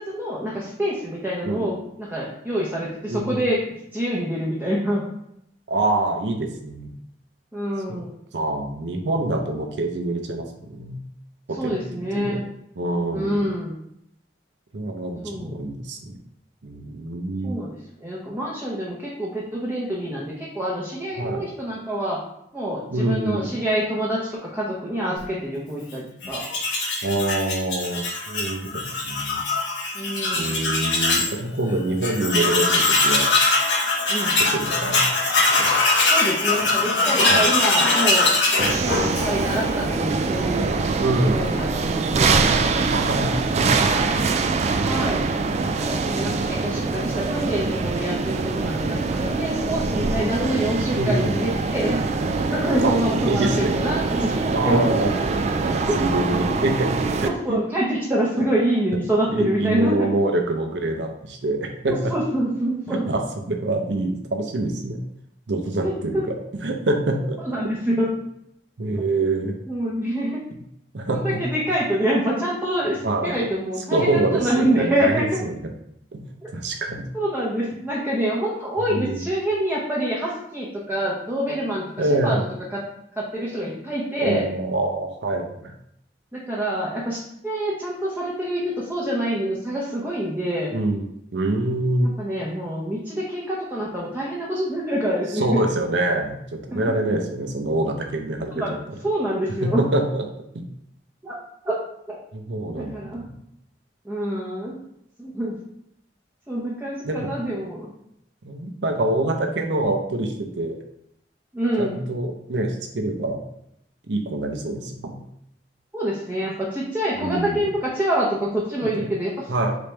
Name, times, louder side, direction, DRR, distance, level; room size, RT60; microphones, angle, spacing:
voice 1, 0.0-3.6 3.9-5.0 7.5-8.1 11.6-12.5 13.1-13.7 15.2-15.6 17.4-17.7 18.0-22.2 22.5-26.4 29.9-30.7 34.1-34.4 36.1-38.3 38.7-40.7 41.3-42.4 44.8-45.3 45.6-52.0 52.5-54.8 55.9-56.0 57.2-60.0 61.9-63.0 65.8-66.2 67.4-68.1 69.7-70.4 71.1-75.3 77.1-81.9 82.2-82.4 82.7-82.8 83.2-84.4 86.3-87.2 87.4-90.7 92.2-95.6 96.7-96.8 98.5-98.7 99.0-99.8 101.2-101.3 101.6-101.8 102.1-102.2 102.8-103.2 104.1-104.8 105.2-105.5 106.5-107.9 111.5-112.0 115.9-119.3, right 1 dB, 10° right, -6 dB, 0.7 m, -26 dB
voice 2, 3.1-3.4 5.7-6.9 7.9-8.0 8.3-11.0 11.5-12.4 12.7-13.4 14.7-16.2 16.6-17.6 21.2-21.4 22.9-23.5 27.0-29.4 30.3-33.3 34.5-35.0 35.6-35.7 37.3-37.4 41.0-41.4 42.9-44.2 50.9-51.3 52.8-52.9 53.3-53.8 54.5-55.1 55.6-57.6 58.4-58.5 59.3-62.1 62.9-63.2 63.5-65.0 65.5-67.4 68.8-69.6 70.9-71.4 73.0-73.4 73.9-75.7 76.1-77.0 78.9-79.2 82.0-82.4 84.2-85.7 90.7-91.0 91.3-92.1 95.3-99.0 99.6-100.3 100.5-100.6 102.3-103.3 107.0-107.3 108.4-110.8 111.8-113.4 114.1-115.2 117.2-117.6 118.8-119.1 119.5-119.7, right 2 dB, 85° right, 4 dB, 0.7 m, -25 dB
Tools, 26.2-31.3 31.7-31.8 32.0-39.6, left 2 dB, 85° left, 1.1 m, -21 dB
sound 1, 38.6-57.3, right 4 dB, 40° right, 0.3 m, -24 dB
4.0 x 3.4 x 3.2 m, 0.75 s
head